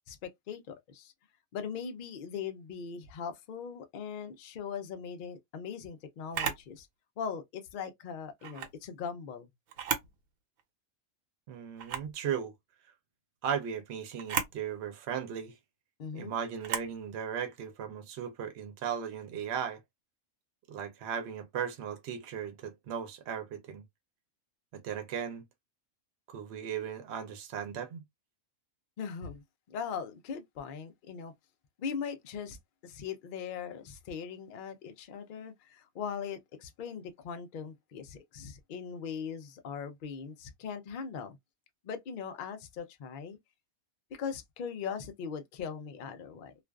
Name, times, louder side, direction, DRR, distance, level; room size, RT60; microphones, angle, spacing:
voice 1, 0.1-1.1 1.5-6.9 7.2-9.5 16.0-16.3 29.0-31.3 31.8-32.6 32.8-41.4 41.8-43.4 44.2-46.5, left 6 dB, 60° left, 0.5 m, -40 dB
Camera, 6.3-6.7 8.4-8.7 9.7-10.2 10.6-10.7 11.8-12.1 14.2-14.6 16.6-16.9, right 8 dB, 85° right, 1.1 m, -34 dB
voice 2, 11.5-12.5 13.4-15.6 16.1-19.8 20.7-23.8 24.7-25.4 26.3-28.0, right 8 dB, 60° right, 0.9 m, -37 dB
2.5 x 2.3 x 2.2 m
omnidirectional pair, 1.4 m